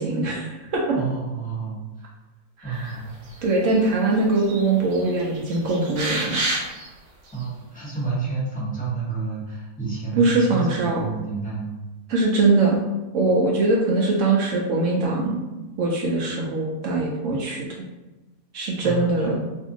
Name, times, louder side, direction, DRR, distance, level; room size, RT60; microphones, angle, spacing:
voice 1, 0.0-1.0 2.6-2.9 3.4-6.4 10.2-11.0 12.1-12.8 13.1-15.4 15.8-17.7 18.5-19.3, right 3 dB, 65° right, -2 dB, 0.8 m, -22 dB
voice 2, 0.9-1.8 2.6-3.1 7.3-11.7 18.8-19.3, right 4 dB, 5° left, -7 dB, 0.8 m, -29 dB
sound 1, 3.3-3.9 4.2-4.6 4.9-6.9 7.4-7.5, right 2 dB, 85° right, 1.3 m, -29 dB
2.6 x 2.5 x 3.7 m, 1.1 s
omnidirectional pair, 1.6 m